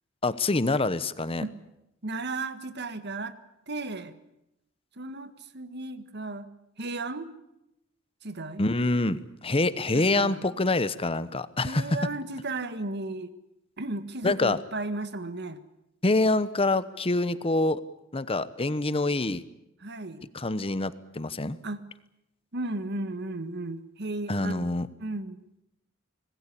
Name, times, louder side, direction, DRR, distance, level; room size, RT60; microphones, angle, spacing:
voice 1, 0.2-1.4 8.6-12.0 14.2-14.6 16.0-17.8 18.1-19.4 20.3-21.6 24.3-24.9, left 2 dB, 30° left, 15 dB, 1.0 m, -26 dB
voice 2, 2.0-3.4 3.7-4.1 5.0-6.5 6.8-7.3 8.2-8.6 9.9-10.4 11.6-13.3 13.8-15.6 19.8-20.2 21.6-21.8 22.5-24.7 25.0-25.4, right 2 dB, 55° right, 12 dB, 1.7 m, -34 dB
25.5 x 20.0 x 8.5 m, 0.85 s
head